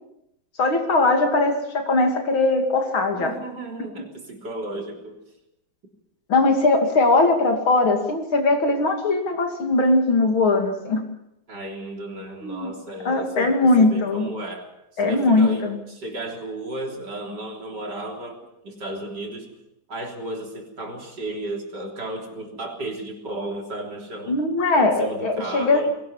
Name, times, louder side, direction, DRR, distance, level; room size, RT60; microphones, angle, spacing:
voice 1, 0.6-3.3 6.3-11.0 12.4-12.7 13.0-14.3 15.0-15.8 24.3-25.8, left 2 dB, 80° left, 4 dB, 3.5 m, -20 dB
voice 2, 3.1-5.2 11.5-19.5 19.9-24.4 24.7-25.9, right 1 dB, 55° right, 1 dB, 4.2 m, -34 dB
21.5 x 18.5 x 7.3 m, 0.83 s
omnidirectional pair, 2.2 m